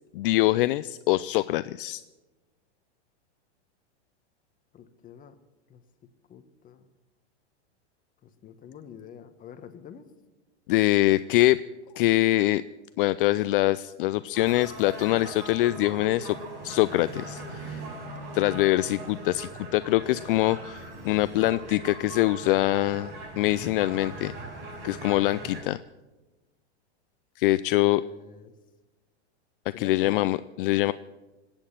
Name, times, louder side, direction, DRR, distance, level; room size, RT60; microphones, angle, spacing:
voice 1, 0.1-2.0 10.7-11.6 12.0-12.6 13.0-16.4 16.6-17.8 18.3-24.3 24.8-25.8 27.4-28.0 29.8-30.9, left 17 dB, 50° left, 15 dB, 0.4 m, -24 dB
voice 2, 4.7-5.4 5.7-5.8 6.3-6.9 8.2-10.1 27.7-28.5 29.7-30.3 30.9-31.0, left 8 dB, 25° left, 9 dB, 1.3 m, -46 dB
sound 1, 14.3-25.6, right 2 dB, 45° right, 5.8 m, -40 dB
21.5 x 8.8 x 7.4 m, 1.1 s
hypercardioid pair, 130°, 35 cm